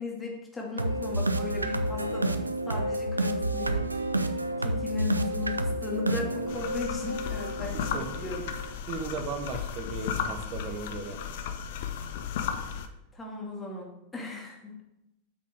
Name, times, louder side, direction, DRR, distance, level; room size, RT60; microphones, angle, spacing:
voice 1, 0.0-3.9 4.6-8.8 13.1-14.8, left 4 dB, 15° left, -1 dB, 2.3 m, -36 dB
sound 1, 0.8-8.7, right 1 dB, 80° right, 0.5 m, -30 dB
sound 2, 6.5-12.9, left 7 dB, 55° left, 0.7 m, -34 dB
voice 2, 7.7-8.5 8.9-11.2, right 4 dB, 35° right, 6 dB, 1.1 m, -37 dB
8.4 x 5.8 x 4.6 m, 0.86 s
figure-of-eight pair, 90°, 0 cm